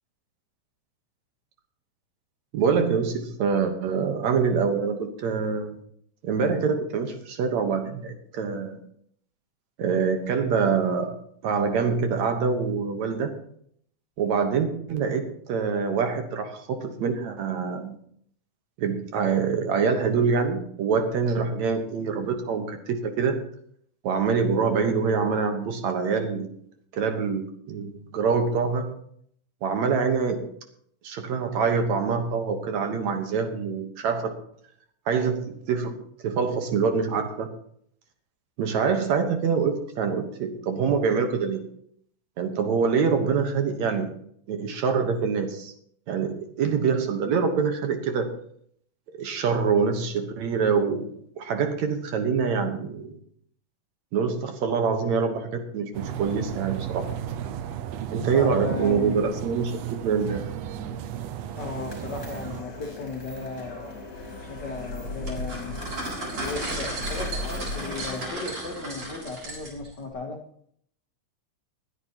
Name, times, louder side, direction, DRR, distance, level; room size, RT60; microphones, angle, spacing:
voice 1, 2.5-5.8 6.2-8.8 9.8-11.1 11.4-13.4 14.2-18.0 18.8-23.4 24.0-26.5 26.9-28.9 29.6-30.5 31.0-34.3 35.1-35.9 36.2-37.5 38.6-41.6 42.4-44.1 44.5-45.7 46.1-48.3 49.1-51.1 51.4-53.2 54.1-57.1 58.1-59.8 60.0-60.4, right 5 dB, 65° right, 6 dB, 2.3 m, -25 dB
sound 1, 55.9-62.6, right 10 dB, 85° right, 1.5 m, -34 dB
voice 2, 58.3-59.3 61.6-63.9 64.4-65.8 66.4-70.4, left 3 dB, 70° left, 2 dB, 1.0 m, -36 dB
sound 2, 61.5-68.3, left 2 dB, 30° left, 5.8 m, -37 dB
sound 3, 65.3-69.9, right 2 dB, 45° right, 4.6 m, -34 dB
20.0 x 11.0 x 2.9 m, 0.66 s
omnidirectional pair, 3.9 m